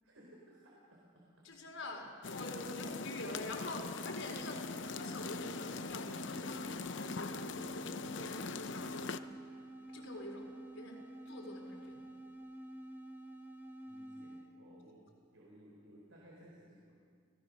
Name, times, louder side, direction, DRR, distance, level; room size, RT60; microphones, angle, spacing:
voice 1, 0.0-1.5 13.9-17.0, equal, 85° right, -3 dB, 4.2 m, -59 dB
voice 2, 1.4-9.3 9.9-12.0, left 1 dB, 80° left, 0 dB, 4.6 m, -46 dB
sound 1, 2.2-9.2, left 4 dB, 60° left, 0.8 m, -42 dB
sound 2, 4.2-14.6, right 1 dB, 10° right, 1.2 m, -49 dB
30.0 x 18.0 x 6.5 m, 2.2 s
head